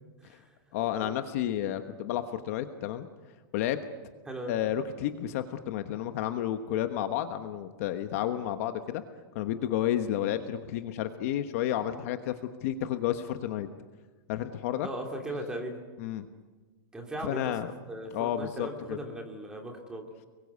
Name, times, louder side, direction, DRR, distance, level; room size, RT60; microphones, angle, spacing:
voice 1, 0.2-0.5 1.0-1.1 4.3-4.5 14.8-15.8 16.9-20.1, right 1 dB, 5° right, 2 dB, 2.7 m, -38 dB
voice 2, 0.7-3.1 3.5-3.8 4.5-9.0 9.3-13.7 14.3-14.9 16.0-16.3 17.3-17.7 18.1-19.0, left 11 dB, 40° left, 8 dB, 1.2 m, -31 dB
29.0 x 22.0 x 8.3 m, 1.3 s
supercardioid pair, 175°, 12 cm